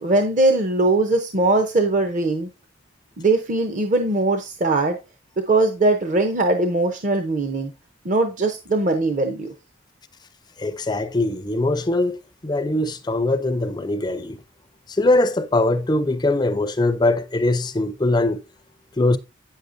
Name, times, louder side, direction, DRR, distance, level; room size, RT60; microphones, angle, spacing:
voice 1, 0.0-2.5 3.2-5.0 5.5-7.7 8.0-9.5, right 2 dB, 40° right, 0.6 m, -20 dB
voice 2, 10.6-14.4 15.0-18.4 19.0-19.2, left 2 dB, 20° left, 0.4 m, -21 dB
8.5 x 6.4 x 2.6 m
head